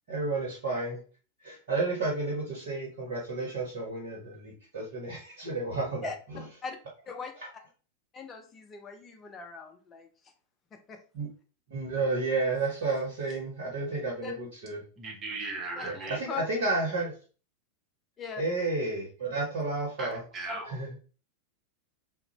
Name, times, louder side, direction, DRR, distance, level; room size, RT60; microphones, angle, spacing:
voice 1, 0.1-1.0 1.4-6.1 11.1-11.3 11.7-14.8 15.8-17.1 18.4-20.2 20.7-20.9, right 3 dB, 60° right, -2 dB, 0.9 m, -31 dB
voice 2, 8.1-10.1 10.7-11.0 14.2-14.3 15.8-15.9 16.3-16.4 18.2-18.4 20.5-20.6, left 5 dB, 25° left, 5 dB, 0.4 m, -40 dB
voice 3, 15.0-16.2 20.0-20.6, right 2 dB, 25° right, 2 dB, 0.7 m, -37 dB
2.5 x 2.0 x 2.9 m, 0.37 s
figure-of-eight pair, 90°, 0 cm